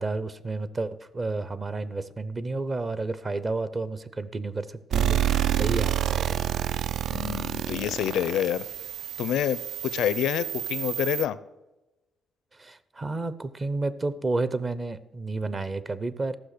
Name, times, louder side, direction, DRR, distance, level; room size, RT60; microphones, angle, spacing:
voice 1, 0.0-5.2 5.6-6.4 12.6-16.4, right 3 dB, 30° right, 16 dB, 0.7 m, -31 dB
sound 1, 4.9-11.3, right 10 dB, 65° right, 0.4 m, -28 dB
voice 2, 7.1-8.6 9.2-11.4, left 11 dB, 80° left, 17 dB, 0.5 m, -27 dB
14.0 x 5.9 x 6.6 m, 1.0 s
cardioid pair, 90°, 0 cm